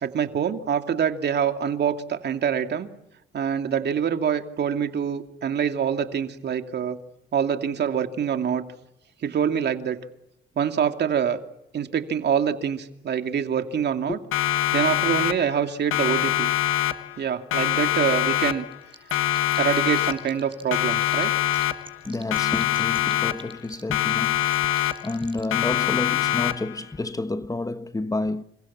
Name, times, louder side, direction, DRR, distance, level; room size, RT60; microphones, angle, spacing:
voice 1, 0.0-2.9 3.3-7.0 7.3-8.7 9.2-10.0 10.6-11.4 11.7-14.2 14.7-16.5 17.2-18.7 19.6-21.3, right 8 dB, 60° right, 2.6 m, -25 dB
Siren, 14.3-15.6 15.9-17.2 17.5-18.8 19.1-20.4 20.7-22.0 22.3-23.6 23.9-25.2 25.5-26.8, left 13 dB, 85° left, 1.5 m, -24 dB
sound 1, 18.7-21.2 21.5-25.4, right 3 dB, 25° right, 6.7 m, -43 dB
voice 2, 22.1-24.5 25.0-28.4, left 2 dB, 15° left, 1.2 m, -30 dB
29.0 x 25.5 x 7.5 m
cardioid pair, 90°, 20 cm